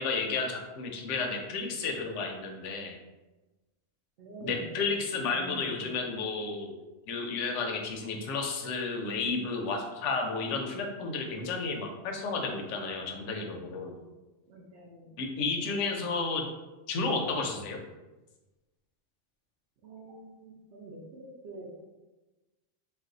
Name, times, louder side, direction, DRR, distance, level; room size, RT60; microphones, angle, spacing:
voice 1, 0.0-2.9 4.4-6.7 7.1-13.9 15.2-16.4 16.9-17.8, left 4 dB, 70° left, 2 dB, 0.9 m, -32 dB
voice 2, 4.2-5.0 5.3-5.9 14.5-15.1 19.8-21.8, right 1 dB, 60° right, -6 dB, 0.9 m, -46 dB
3.2 x 2.2 x 3.7 m, 1.1 s
omnidirectional pair, 1.4 m